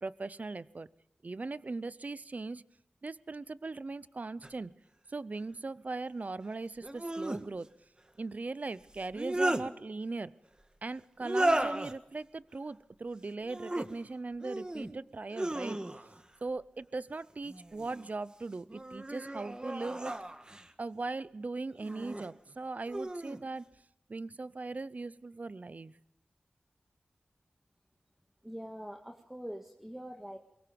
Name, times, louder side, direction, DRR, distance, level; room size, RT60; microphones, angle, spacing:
voice 1, 0.0-0.9 1.2-2.6 3.0-4.7 5.1-7.7 8.2-10.3 10.8-15.8 16.4-20.2 20.8-23.7 24.1-25.9, right 3 dB, 50° right, 17 dB, 0.7 m, -39 dB
sound 1, 4.4-4.5 6.8-7.4 8.9-9.7 11.2-11.9 13.4-13.9 14.4-14.9 15.3-16.2 17.4-18.1 18.7-20.7 21.8-22.3 22.9-23.4, right 1 dB, 25° right, 1.5 m, -34 dB
voice 2, 28.4-30.4, equal, 5° right, 2 dB, 1.8 m, -43 dB
23.0 x 22.5 x 5.3 m, 0.81 s
wide cardioid pair, 60°, 3 cm